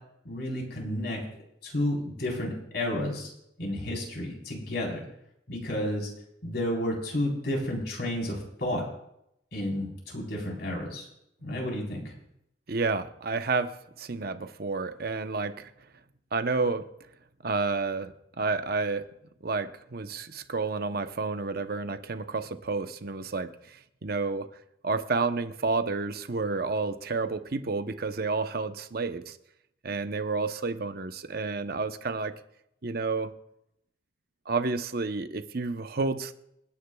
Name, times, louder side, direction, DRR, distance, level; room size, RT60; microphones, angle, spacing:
voice 1, 0.2-1.2 1.6-3.3 3.6-5.0 5.5-6.1 6.4-8.8 9.5-11.1 11.4-12.0, left 1 dB, 60° left, -1 dB, 4.0 m, -31 dB
voice 2, 12.7-15.7 16.3-16.9 17.4-19.0 19.4-24.5 24.8-29.4 29.8-32.3 32.8-33.3 34.5-36.3, right 4 dB, 55° right, 9 dB, 0.8 m, -30 dB
27.5 x 9.9 x 2.3 m, 0.79 s
head